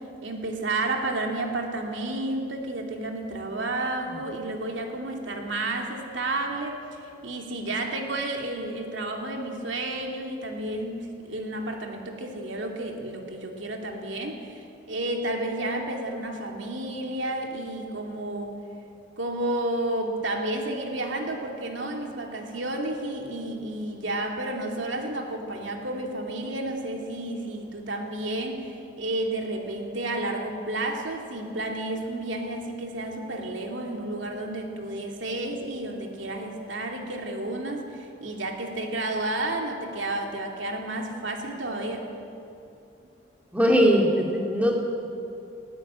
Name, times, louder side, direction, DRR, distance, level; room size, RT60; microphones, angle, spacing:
voice 1, 0.0-18.6 19.2-42.1, right 2 dB, 80° right, 2 dB, 2.7 m, -31 dB
voice 2, 43.5-44.8, equal, 10° right, 0 dB, 2.5 m, -20 dB
19.0 x 17.5 x 8.9 m, 2.7 s
head